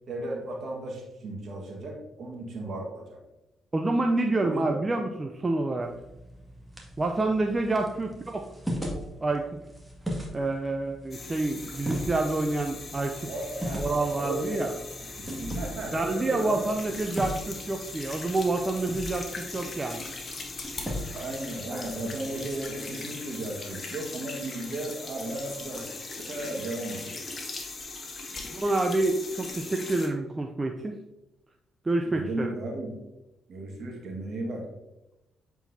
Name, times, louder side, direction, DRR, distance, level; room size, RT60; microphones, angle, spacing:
voice 1, 0.1-3.2 4.4-4.8 13.3-14.7 15.2-16.7 21.1-25.8 26.3-27.2 32.0-32.9 33.5-34.7, right 2 dB, 60° right, 0 dB, 1.7 m, -35 dB
voice 2, 3.7-5.9 7.0-8.4 9.2-9.5 10.3-13.2 13.8-14.7 15.9-20.1 28.5-30.9 31.8-32.5, right 2 dB, 30° right, 3 dB, 0.6 m, -28 dB
sound 1, 5.8-22.7, equal, 5° right, 2.0 m, -39 dB
sound 2, 11.1-30.1, left 3 dB, 45° left, 1.3 m, -40 dB
7.7 x 4.6 x 2.8 m, 0.95 s
hypercardioid pair, 50°, 0 cm